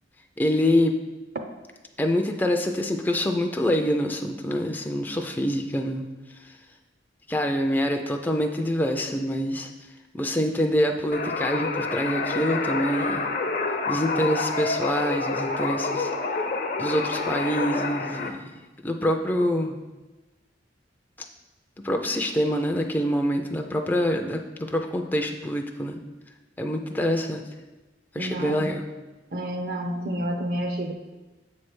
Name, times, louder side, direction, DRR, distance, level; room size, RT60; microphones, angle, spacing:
voice 1, 0.4-1.0 2.0-6.1 6.4-6.5 7.3-9.7 10.1-13.2 13.9-16.1 16.8-18.4 18.8-19.8 21.8-26.0 26.6-27.4 28.1-28.8, equal, 10° left, 3 dB, 0.4 m, -25 dB
sound 1, 11.1-18.3, left 3 dB, 50° left, 0.6 m, -28 dB
voice 2, 28.2-28.6 29.3-30.9, right 1 dB, 55° right, 5 dB, 0.6 m, -29 dB
7.7 x 3.2 x 6.1 m, 1.2 s
head